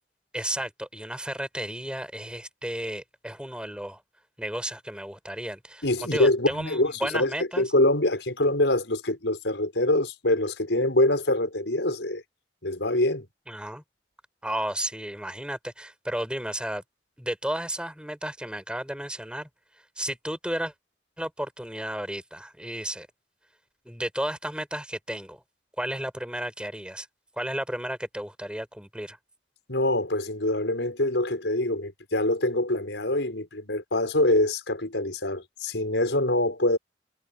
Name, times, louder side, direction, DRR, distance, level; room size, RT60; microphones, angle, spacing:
voice 1, 0.3-4.0 4.4-7.6 13.5-13.8 14.4-16.8 17.2-19.5 20.0-20.7 21.2-23.1 23.9-25.4 25.8-27.1 27.4-29.2, right 1 dB, 5° right, 5.4 m, -33 dB
voice 2, 5.8-12.2 12.6-13.3 29.7-36.8, left 1 dB, 90° left, 5.9 m, -25 dB
head